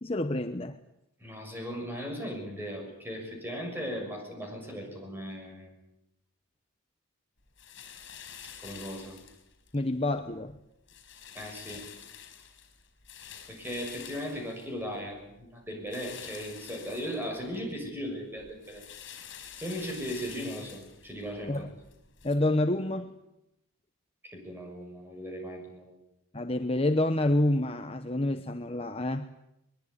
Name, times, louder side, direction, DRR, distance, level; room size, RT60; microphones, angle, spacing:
voice 1, 0.0-0.8 9.7-10.6 21.5-21.7 22.2-23.2 26.3-29.3, left 1 dB, 25° left, 0.9 m, -28 dB
voice 2, 1.2-5.8 8.6-9.2 11.3-11.8 13.5-18.8 19.6-21.7 24.2-26.0, equal, 10° right, 6.6 m, -37 dB
sound 1, 7.6-9.8 10.2-10.5 10.9-15.2 15.9-17.7 18.1-22.4, left 8 dB, 60° left, 5.1 m, -48 dB
22.0 x 21.5 x 9.6 m
head